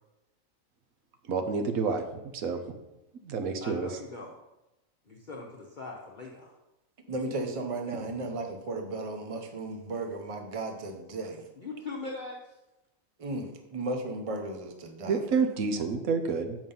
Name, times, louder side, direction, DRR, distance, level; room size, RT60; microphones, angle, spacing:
voice 1, 1.3-2.0 2.3-2.6 3.2-4.0 15.0-16.6, right 5 dB, 90° right, 6 dB, 1.3 m, -28 dB
voice 2, 3.6-4.4 5.1-6.5 11.6-12.5, left 3 dB, 40° left, -1 dB, 0.9 m, -40 dB
voice 3, 7.1-11.4 13.2-15.2, right 2 dB, 30° right, 4 dB, 0.8 m, -35 dB
7.2 x 5.3 x 5.5 m, 0.96 s
omnidirectional pair, 1.4 m